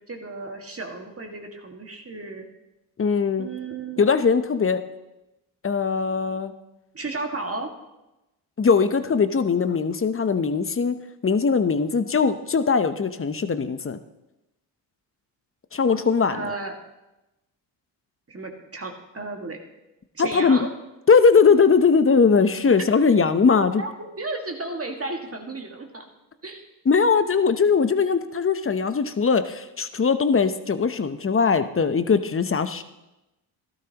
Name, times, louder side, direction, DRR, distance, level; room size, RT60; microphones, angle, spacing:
voice 1, 0.1-2.5 3.4-4.1 6.9-7.7 16.3-16.8 18.3-19.6 20.1-20.7 23.1-23.2 23.8-26.0 26.4-26.6, right 3 dB, 30° right, 3 dB, 1.9 m, -33 dB
voice 2, 3.0-3.5 4.0-4.8 5.6-6.5 8.6-11.0 11.2-14.0 15.7-16.6 20.2-20.7 21.1-23.8 26.8-32.8, left 5 dB, 25° left, 11 dB, 0.8 m, -20 dB
13.0 x 12.5 x 3.0 m, 0.97 s
hypercardioid pair, 50°, 49 cm